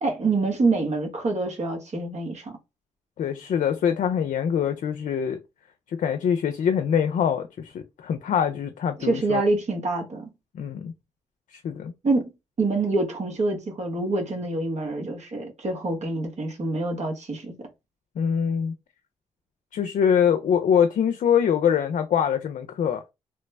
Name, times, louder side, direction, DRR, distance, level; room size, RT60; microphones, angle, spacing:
voice 1, 0.0-2.5 9.0-10.3 12.0-12.3 12.6-17.5, right 3 dB, 60° right, 1.1 m, -26 dB
voice 2, 3.2-5.4 6.0-9.4 10.5-10.9 11.6-11.9 18.2-18.7 19.7-23.0, left 8 dB, 70° left, 0.5 m, -24 dB
3.0 x 2.0 x 3.3 m
supercardioid pair, 50°, 13 cm